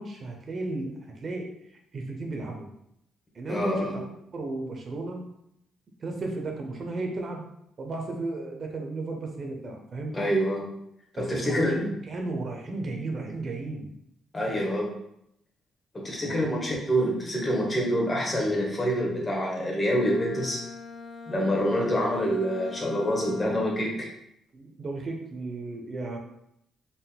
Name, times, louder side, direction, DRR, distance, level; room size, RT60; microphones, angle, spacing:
voice 1, 0.0-1.5 1.9-2.7 3.3-4.0 4.3-5.2 6.0-7.4 7.8-10.2 11.2-13.9 14.5-14.7 16.2-16.4 23.2-23.6 24.5-26.2, right 2 dB, 45° right, 2 dB, 0.7 m, -34 dB
voice 2, 3.5-4.0 10.1-10.7 11.1-11.8 14.3-14.9 15.9-20.6 21.3-24.1, equal, 25° left, -2 dB, 1.3 m, -26 dB
Bowed string instrument, 19.8-23.9, left 3 dB, 40° left, 0.3 m, -42 dB
4.1 x 3.7 x 2.2 m, 0.76 s
cardioid pair, 90°, 0 cm